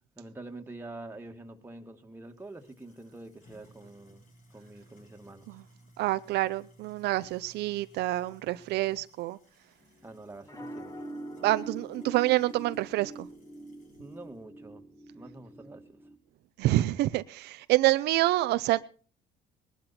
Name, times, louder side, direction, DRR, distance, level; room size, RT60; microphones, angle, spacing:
voice 1, 0.2-4.2 4.5-5.5 10.0-11.0 14.0-14.8 15.1-16.0, right 2 dB, 15° right, 2.1 m, -46 dB
sound 1, 2.3-14.3, equal, 50° left, 7.5 m, -60 dB
voice 2, 6.0-9.4 11.4-13.3 16.6-18.8, right 17 dB, 80° right, 0.7 m, -27 dB
sound 2, 9.8-16.2, right 1 dB, 20° left, 2.2 m, -44 dB
20.5 x 12.0 x 4.3 m
cardioid pair, 110°, 17 cm